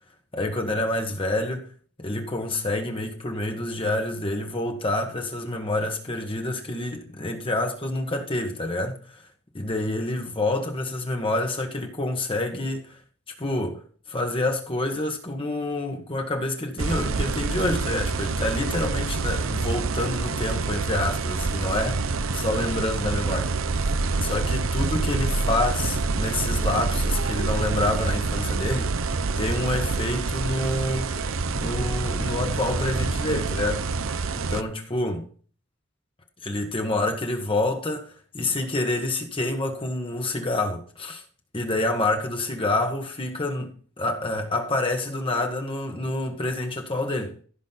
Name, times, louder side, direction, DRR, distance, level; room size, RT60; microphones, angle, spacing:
voice 1, 0.3-1.7 2.0-9.3 9.5-13.0 13.4-13.8 14.1-23.5 23.8-23.9 24.2-31.1 31.5-33.9 34.3-35.3 36.4-41.2 41.5-47.3, left 2 dB, 25° left, 1.6 m, -28 dB
sound 1, 16.8-34.6, right 3 dB, 75° right, 0.8 m, -26 dB
15.5 x 6.4 x 4.2 m
head